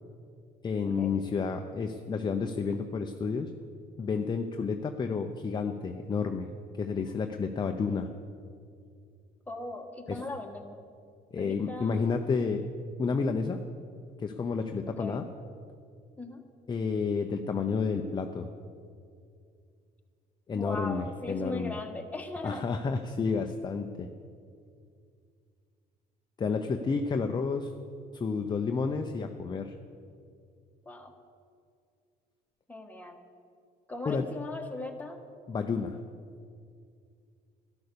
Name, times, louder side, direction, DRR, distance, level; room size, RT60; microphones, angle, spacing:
voice 1, 0.6-3.5 4.0-6.5 6.8-8.1 10.1-10.2 11.3-12.7 13.0-13.6 14.2-15.3 16.7-18.5 20.5-21.8 22.4-24.1 26.4-27.7 28.1-29.7 34.0-34.2 35.5-36.0, left 5 dB, 25° left, 5 dB, 0.6 m, -30 dB
voice 2, 9.5-10.8 11.4-12.1 14.9-15.2 16.2-16.4 20.5-22.6 30.8-31.1 32.7-33.2 33.9-35.2, left 2 dB, 10° left, 2 dB, 1.4 m, -39 dB
12.5 x 10.5 x 6.8 m, 2.3 s
cardioid pair, 110°, 17 cm